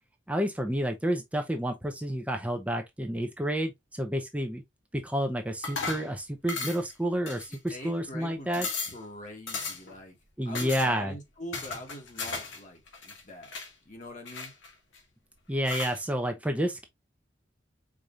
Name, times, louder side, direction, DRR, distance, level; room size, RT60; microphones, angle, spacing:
voice 1, 0.3-4.6 4.9-8.7 10.4-11.1 15.5-16.8, equal, 5° right, 0.7 m, -30 dB
sound 1, 5.6-6.1 6.5-6.9 7.3-7.9 8.2-8.3 8.5-9.0 9.5-9.9 10.5-10.9 11.5-12.6 12.9-13.7 14.3-15.0 15.6-16.0, left 4 dB, 90° left, 1.8 m, -36 dB
voice 2, 7.5-10.2 10.4-13.5 13.8-14.5, equal, 40° left, 1.4 m, -44 dB
4.9 x 4.2 x 2.6 m
head